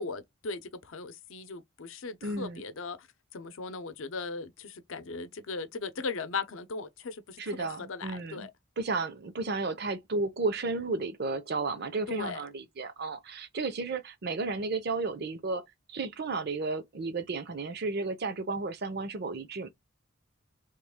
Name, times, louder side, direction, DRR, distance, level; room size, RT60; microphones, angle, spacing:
voice 1, 0.0-3.1 3.3-8.5 12.1-12.4, left 4 dB, 80° left, 0.6 m, -38 dB
voice 2, 2.2-2.6 7.4-8.5 8.8-19.7, right 3 dB, 55° right, 0.6 m, -33 dB
3.1 x 2.3 x 3.5 m
head